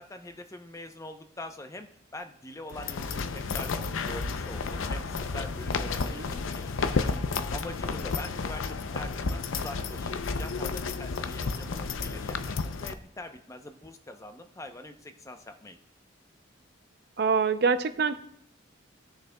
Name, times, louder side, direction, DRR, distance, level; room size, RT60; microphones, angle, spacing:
voice 1, 0.0-3.7 4.0-6.7 7.0-7.2 7.5-15.8, left 1 dB, 15° left, 7 dB, 0.6 m, -43 dB
sound 1, 2.7-12.9, left 4 dB, 90° left, 0.6 m, -32 dB
voice 2, 17.2-18.2, right 5 dB, 55° right, 10 dB, 0.5 m, -25 dB
18.5 x 6.5 x 2.2 m, 0.66 s
head